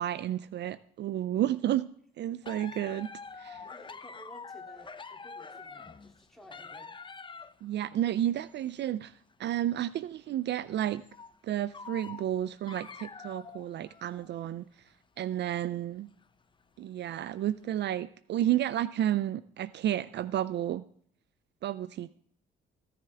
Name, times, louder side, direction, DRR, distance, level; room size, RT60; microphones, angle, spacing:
voice 1, 0.0-1.9 2.2-3.1 3.4-3.6 7.6-9.1 9.4-11.0 11.4-14.6 15.2-16.1 16.8-20.8 21.6-22.1, right 12 dB, 60° right, 17 dB, 0.4 m, -31 dB
sound 1, 2.4-7.6 8.3-8.8 9.3-9.4 10.0-10.1 11.0-11.4 11.7-14.5 14.9-15.0 16.0-16.2 17.1-17.3 17.7-17.8, left 5 dB, 25° left, 0.7 m, -46 dB
voice 2, 3.7-7.0, equal, ahead, 1 dB, 2.7 m, -54 dB
15.0 x 10.0 x 3.4 m, 0.64 s
cardioid pair, 90°, 20 cm